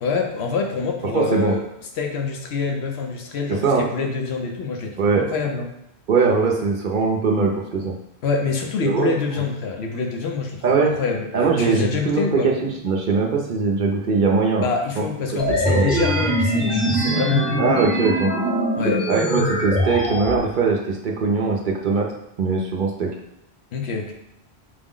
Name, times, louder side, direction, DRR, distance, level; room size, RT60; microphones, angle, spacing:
voice 1, 0.0-1.6 2.0-5.7 8.2-12.5 14.6-17.6 18.8-19.1 23.7-24.1, left 5 dB, 75° left, 2 dB, 0.9 m, -26 dB
voice 2, 1.1-1.6 3.5-3.9 5.0-5.2 6.1-7.9 8.8-9.1 10.6-10.9 11.3-14.7 15.0-15.1 15.5-15.9 17.6-18.3 19.1-22.1 22.4-23.1, right 4 dB, 55° right, -1 dB, 0.6 m, -21 dB
sound 1, 15.4-20.4, equal, ahead, 0.6 m, -22 dB
5.0 x 2.0 x 3.7 m, 0.82 s
omnidirectional pair, 1.1 m